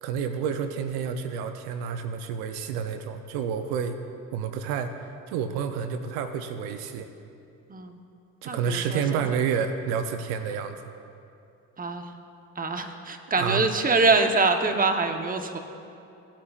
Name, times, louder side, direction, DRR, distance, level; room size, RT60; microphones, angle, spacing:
voice 1, 0.0-4.0 4.3-7.1 8.4-10.8 13.4-13.6, right 7 dB, 80° right, 8 dB, 0.7 m, -29 dB
voice 2, 8.4-9.2 11.8-12.1 12.5-15.6, right 3 dB, 25° right, 6 dB, 1.0 m, -24 dB
18.0 x 8.7 x 2.5 m, 2.6 s
supercardioid pair, 70°, 37 cm